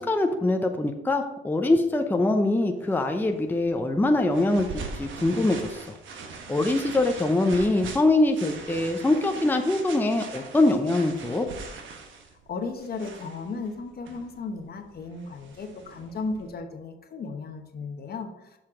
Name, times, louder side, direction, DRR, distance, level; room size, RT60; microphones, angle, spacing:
voice 1, 0.0-6.0 6.5-11.5, left 2 dB, 10° left, 4 dB, 0.7 m, -23 dB
sound 1, 2.9-16.5, right 4 dB, 75° right, 1.2 m, -42 dB
voice 2, 12.5-18.3, left 4 dB, 50° left, 5 dB, 1.1 m, -35 dB
6.8 x 5.7 x 4.8 m, 0.97 s
cardioid pair, 90°, 20 cm